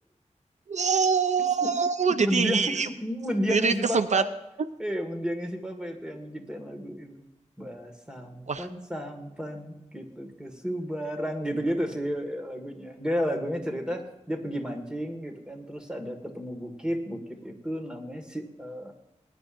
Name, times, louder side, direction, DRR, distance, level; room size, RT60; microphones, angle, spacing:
voice 1, 0.7-2.9 3.5-4.2 8.5-8.7, right 5 dB, 70° right, 10 dB, 0.4 m, -24 dB
voice 2, 2.2-4.3 4.8-7.2 7.6-18.9, equal, 5° right, 3 dB, 1.8 m, -32 dB
21.5 x 10.0 x 2.6 m, 0.95 s
wide cardioid pair, 80°, 13 cm